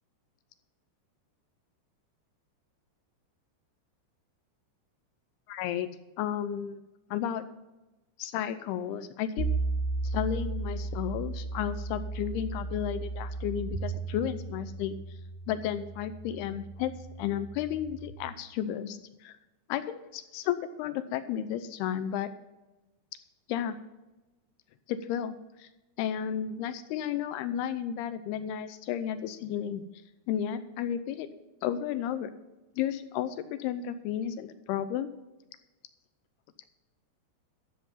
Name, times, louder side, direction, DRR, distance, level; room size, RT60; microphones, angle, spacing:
voice 1, 5.5-5.9 6.2-6.8 7.1-7.5 8.2-9.5 10.0-15.0 15.5-16.9 17.2-19.4 19.7-22.3 23.5-23.8 24.9-25.7 26.0-29.8 30.3-31.3 31.6-32.3 32.8-35.1, left 10 dB, 80° left, 12 dB, 2.4 m, -33 dB
sound 1, 9.4-18.1, right 3 dB, 60° left, 1.2 m, -35 dB
14.0 x 7.5 x 5.6 m, 1.0 s
omnidirectional pair, 5.2 m